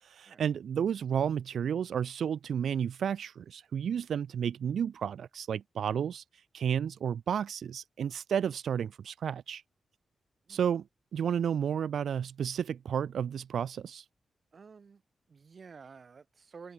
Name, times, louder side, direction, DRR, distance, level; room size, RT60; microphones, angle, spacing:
voice 1, 0.0-9.6 10.5-10.8 11.1-14.1, right 8 dB, 80° right, 0.7 m, -32 dB
voice 2, 14.5-15.0 15.3-16.7, right 5 dB, 45° right, 5.8 m, -51 dB
wide cardioid pair, 145°, 0 cm